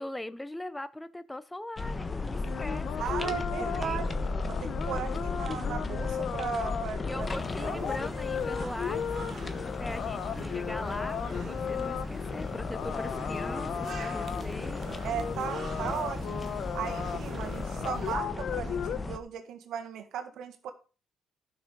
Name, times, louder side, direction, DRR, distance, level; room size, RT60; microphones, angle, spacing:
voice 1, 0.0-4.1 7.0-9.0 9.8-14.8, left 1 dB, 10° left, 16 dB, 0.6 m, -40 dB
sound 1, 1.8-19.2, left 3 dB, 30° left, 1.2 m, -35 dB
sound 2, 2.4-19.0, left 8 dB, 70° left, 0.9 m, -36 dB
voice 2, 3.0-7.3 7.6-7.9 15.0-16.4 16.7-20.7, right 8 dB, 80° right, 6 dB, 1.6 m, -37 dB
sound 3, 7.2-18.2, right 7 dB, 55° right, 1.2 m, -46 dB
11.5 x 6.1 x 5.3 m, 0.35 s
cardioid pair, 90°, 0 cm